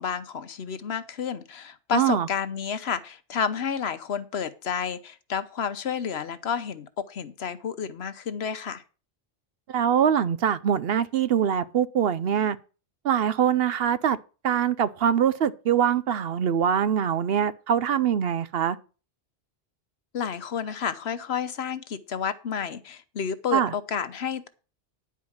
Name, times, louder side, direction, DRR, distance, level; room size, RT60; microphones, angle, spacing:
voice 1, 0.0-8.8 20.1-24.5, left 7 dB, 65° left, 1.1 m, -30 dB
voice 2, 1.9-2.3 9.7-12.6 13.0-14.2 14.4-18.8 23.5-23.7, right 8 dB, 65° right, 0.8 m, -23 dB
10.5 x 4.8 x 7.2 m
omnidirectional pair, 1.2 m